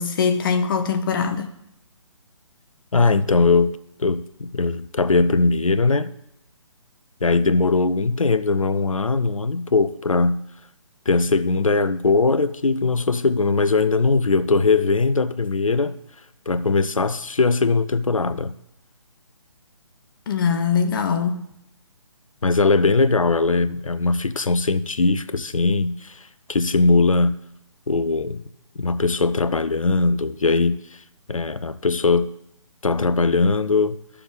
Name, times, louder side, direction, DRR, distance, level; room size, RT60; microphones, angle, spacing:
voice 1, 0.0-1.5 20.3-21.4, left 6 dB, 40° left, 1.0 m, -22 dB
voice 2, 2.9-6.1 7.2-10.5 11.1-16.0 16.5-18.5 22.4-26.2 26.5-27.4 27.9-28.4 28.8-30.8 31.3-32.3 32.8-34.0, left 3 dB, 80° left, 0.7 m, -20 dB
13.5 x 6.9 x 3.5 m
figure-of-eight pair, 140°, 17 cm